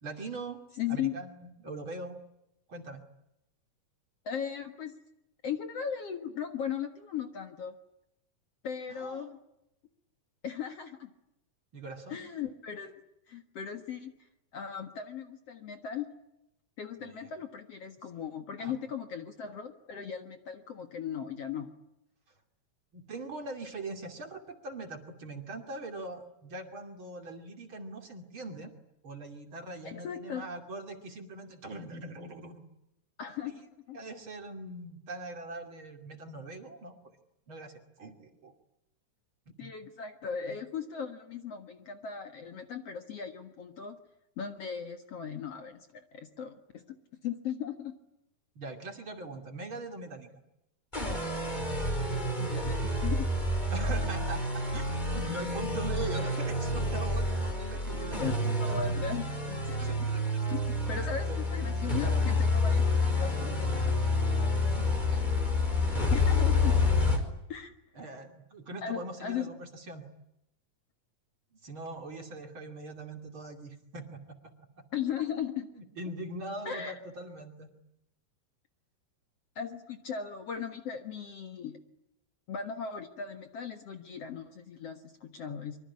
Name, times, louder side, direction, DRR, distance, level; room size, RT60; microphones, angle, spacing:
voice 1, 0.0-0.6 0.9-2.2 2.7-3.0 8.9-9.3 11.7-12.2 17.0-17.3 18.6-18.7 22.9-28.7 29.0-32.6 33.4-33.6 33.9-37.0 37.5-38.5 39.5-39.7 48.5-50.3 53.7-54.8 55.1-58.5 59.8-60.4 61.0-61.4 64.7-65.3 66.1-66.3 67.9-70.0 71.6-74.5 74.8-74.9 75.8-77.7, right 2 dB, 40° right, 4 dB, 3.2 m, -42 dB
voice 2, 0.8-1.2 4.3-5.0 5.4-7.8 8.6-9.4 10.4-11.1 12.1-13.0 13.3-14.1 14.5-16.1 16.8-21.7 29.8-30.5 33.2-34.0 39.6-44.0 44.4-46.8 47.2-47.9 52.4-53.3 58.2-60.1 60.5-63.9 66.1-66.9 67.5-67.7 68.8-69.5 74.9-75.7 76.6-77.0 79.6-81.8 82.5-85.8, left 7 dB, 50° left, 6 dB, 2.3 m, -37 dB
sound 1, 50.9-67.2, left 2 dB, 10° left, 4.5 m, -28 dB
25.0 x 24.5 x 9.8 m, 0.84 s
omnidirectional pair, 4.0 m